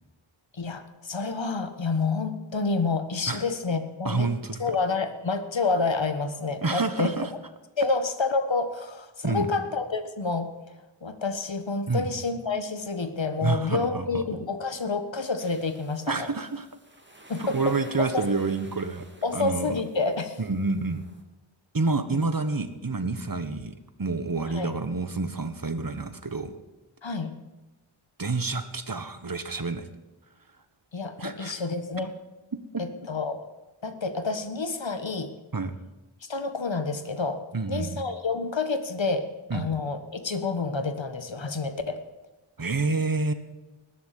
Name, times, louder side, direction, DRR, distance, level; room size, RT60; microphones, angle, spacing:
voice 1, 0.5-4.3 4.6-7.1 7.8-10.5 11.0-16.3 17.3-18.3 19.2-20.4 22.1-22.2 24.5-24.7 27.0-27.3 30.9-32.1 32.8-33.5 33.8-35.3 36.2-37.4 37.7-42.0, left 3 dB, 65° left, 9 dB, 1.6 m, -29 dB
voice 2, 4.0-4.6 6.6-7.3 9.2-9.5 11.9-12.1 13.4-14.2 16.1-16.7 17.4-19.1 19.3-19.7 20.4-21.0 21.7-26.5 28.2-29.9 31.2-31.6 32.5-32.6 35.5-35.7 37.5-38.0 39.5-39.7 42.6-43.3, right 3 dB, 45° right, 10 dB, 1.5 m, -28 dB
sound 1, 15.4-21.2, right 1 dB, 25° right, 2.4 m, -51 dB
20.0 x 7.2 x 7.8 m, 1.1 s
wide cardioid pair, 45°, 48 cm